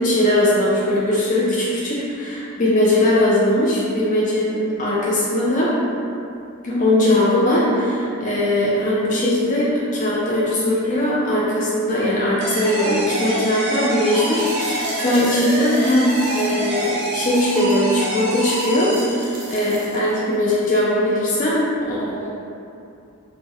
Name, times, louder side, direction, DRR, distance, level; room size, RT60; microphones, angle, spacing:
voice 1, 0.0-5.8 6.6-22.3, left 1 dB, 35° left, -6 dB, 0.3 m, -20 dB
sound 1, 12.4-19.8, right 1 dB, 50° right, 0.7 m, -27 dB
sound 2, 14.1-17.8 18.2-18.3 18.4-20.3 20.7-20.8, right 2 dB, 90° right, 0.6 m, -38 dB
2.3 x 2.0 x 3.9 m, 2.6 s
head